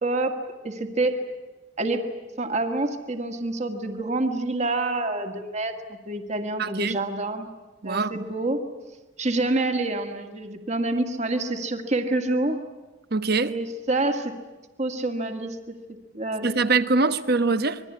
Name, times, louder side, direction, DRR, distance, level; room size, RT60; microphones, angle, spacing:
voice 1, 0.0-1.2 1.8-2.0 2.4-7.5 7.8-8.6 9.2-12.6 13.5-14.3 14.8-15.6 16.1-16.5, right 2 dB, 35° right, 2.0 m, -27 dB
voice 2, 6.6-7.0 7.8-8.1 13.1-13.5 16.4-17.8, right 3 dB, 55° right, 1.2 m, -23 dB
26.5 x 22.0 x 9.8 m
head